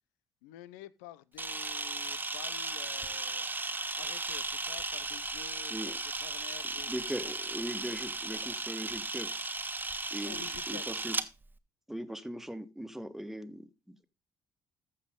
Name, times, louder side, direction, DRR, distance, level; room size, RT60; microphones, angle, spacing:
voice 1, 0.4-3.4 4.0-6.9 7.2-7.3 10.3-10.9, left 13 dB, 90° left, 0.6 m, -50 dB
Camera, 1.4-11.3, right 3 dB, 20° right, 1.3 m, -36 dB
voice 2, 6.9-9.3 10.1-11.2 11.9-14.0, equal, 5° right, 1.5 m, -40 dB
14.5 x 5.5 x 3.7 m
supercardioid pair, 60°, 9 cm